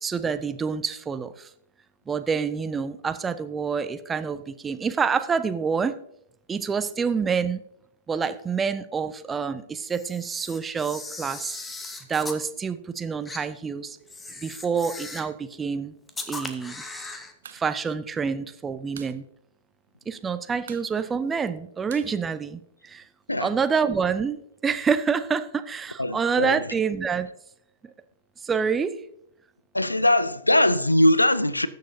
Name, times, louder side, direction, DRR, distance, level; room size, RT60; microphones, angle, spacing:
voice 1, 0.0-1.5 2.1-6.0 6.5-7.6 8.1-11.6 12.1-14.0 14.4-15.9 16.3-16.8 17.5-19.3 20.1-23.1 23.4-27.3 28.4-29.0, right 6 dB, 15° right, 0.6 m, -27 dB
Camera, 9.9-12.4 13.3-13.4 14.1-15.4 16.1-17.3, left 3 dB, 10° left, 1.0 m, -38 dB
sound 1, 17.4-17.7 17.9-18.0 18.3-19.2 19.5-19.6 19.9-20.3 20.6-23.0, right 9 dB, 60° right, 0.7 m, -47 dB
voice 2, 26.0-26.6 29.7-31.7, left 1 dB, 85° left, 0.5 m, -21 dB
19.5 x 6.6 x 2.7 m
figure-of-eight pair, 105°, 0 cm